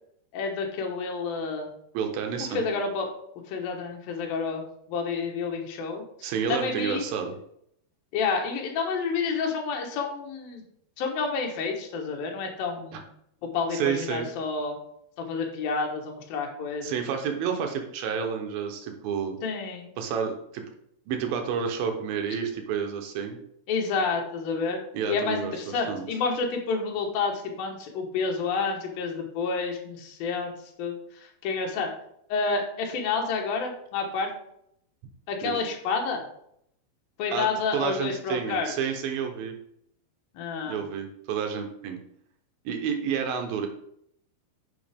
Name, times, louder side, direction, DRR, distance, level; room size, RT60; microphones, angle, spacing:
voice 1, 0.3-1.7 2.5-3.1 3.5-6.0 6.5-7.0 8.1-10.6 11.0-13.0 13.4-14.8 15.2-16.9 19.4-19.9 23.7-24.8 25.1-30.5 30.8-31.0 31.4-31.9 32.3-34.3 35.3-36.2 37.2-38.7 40.3-40.8, left 4 dB, 70° left, 1 dB, 2.9 m, -29 dB
voice 2, 1.9-2.6 6.2-7.3 12.9-13.0 13.7-14.3 16.8-19.4 20.0-20.7 21.1-23.4 24.9-25.5 25.9-26.1 35.4-35.6 37.3-37.5 37.7-39.6 40.7-42.0 42.7-43.7, right 7 dB, 75° right, 4 dB, 2.5 m, -30 dB
9.3 x 5.8 x 3.5 m, 0.72 s
omnidirectional pair, 4.6 m